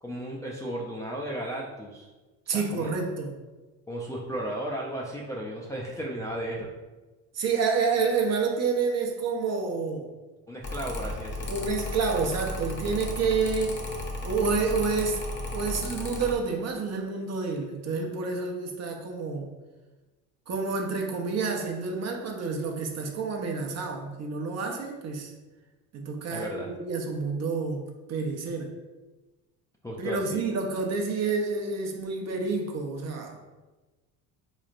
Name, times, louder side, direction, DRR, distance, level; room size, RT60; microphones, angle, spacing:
voice 1, 0.0-2.1 2.5-2.9 3.9-6.7 10.5-11.6 26.3-26.7 29.8-30.4, right 1 dB, 10° left, -4 dB, 0.4 m, -34 dB
voice 2, 2.5-3.3 7.3-10.1 11.5-13.8 14.2-15.2 15.5-19.5 20.5-25.3 25.9-27.8 28.1-28.7 30.0-33.4, right 4 dB, 40° right, 2 dB, 0.7 m, -29 dB
Mechanical fan, 10.6-16.3, left 1 dB, 30° left, 0.8 m, -34 dB
4.0 x 3.1 x 2.4 m, 1.2 s
supercardioid pair, 95°, 41 cm